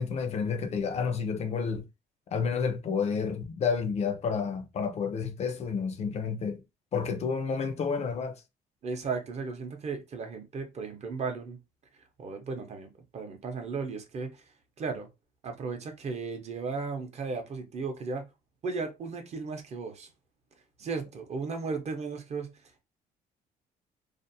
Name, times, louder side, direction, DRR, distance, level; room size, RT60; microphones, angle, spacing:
voice 1, 0.0-1.9 2.3-6.6 6.9-8.4, left 5 dB, 40° left, 0.4 m, -30 dB
voice 2, 8.8-11.6 11.9-14.4 14.8-15.1 15.4-18.3 18.6-20.1 20.8-22.8, right 4 dB, 40° right, 0.6 m, -35 dB
2.4 x 2.0 x 2.6 m
cardioid pair, 110°, 17 cm